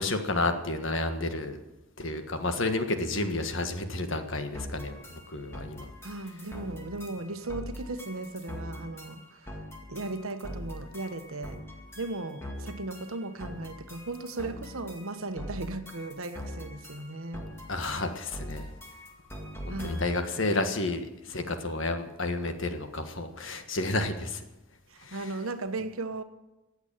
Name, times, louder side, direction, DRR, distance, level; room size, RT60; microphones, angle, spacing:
voice 1, 0.0-1.6 2.0-5.9 17.7-18.7 19.7-24.4 25.0-25.3, left 2 dB, 60° left, 7 dB, 1.5 m, -31 dB
sound 1, 4.5-20.3, equal, 10° left, 2.1 m, -42 dB
voice 2, 6.0-9.6 9.9-11.6 12.0-17.5 19.7-20.2 24.9-26.2, right 2 dB, 75° right, 9 dB, 1.1 m, -37 dB
15.0 x 8.1 x 8.9 m, 1.0 s
head